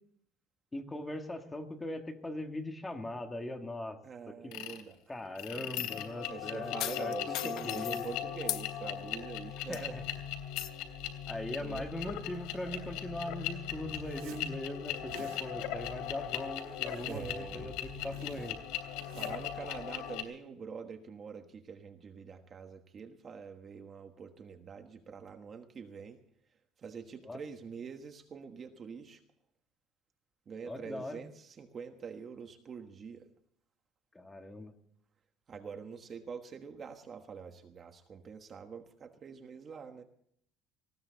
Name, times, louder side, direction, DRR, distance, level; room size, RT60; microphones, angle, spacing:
voice 1, 0.7-4.0 4.3-4.5 5.1-8.1 9.7-10.0 11.3-18.6 27.2-27.4 30.7-31.2 34.1-34.7, left 1 dB, 10° left, 5 dB, 1.9 m, -40 dB
voice 2, 4.0-5.0 6.3-10.0 11.6-11.9 17.0-17.8 19.1-26.2 26.8-29.2 30.5-33.3 35.5-40.0, right 6 dB, 25° right, 6 dB, 1.3 m, -45 dB
sound 1, 4.5-4.8 5.3-20.2, left 10 dB, 75° left, 3.0 m, -39 dB
sound 2, 5.4-6.1 6.8-8.1 8.5-8.7 9.2-9.3 9.7-10.1 10.6-10.7, left 13 dB, 60° left, 1.1 m, -38 dB
Zipper (clothing), 14.0-14.5 14.9-15.4 16.3-17.4 17.7-19.5, right 9 dB, 85° right, 3.4 m, -50 dB
19.5 x 16.5 x 4.0 m, 0.67 s
cardioid pair, 165°, 0 cm